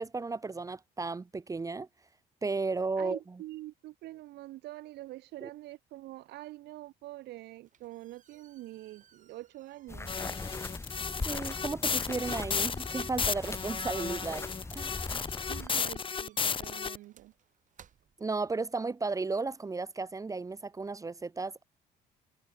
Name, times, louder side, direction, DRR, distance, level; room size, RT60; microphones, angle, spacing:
voice 1, 0.0-1.9 2.4-3.2 5.4-5.5 11.2-14.5 14.7-15.0 18.2-21.6, right 3 dB, 20° right, 1.2 m, -34 dB
voice 2, 3.0-10.2 15.5-17.3, right 17 dB, 80° right, 4.0 m, -45 dB
sound 1, 7.4-18.8, right 9 dB, 50° right, 6.6 m, -64 dB
sound 2, 9.9-15.7, left 3 dB, 15° left, 2.1 m, -40 dB
sound 3, 10.1-17.0, left 6 dB, 30° left, 1.6 m, -33 dB
cardioid pair, 110°, 17 cm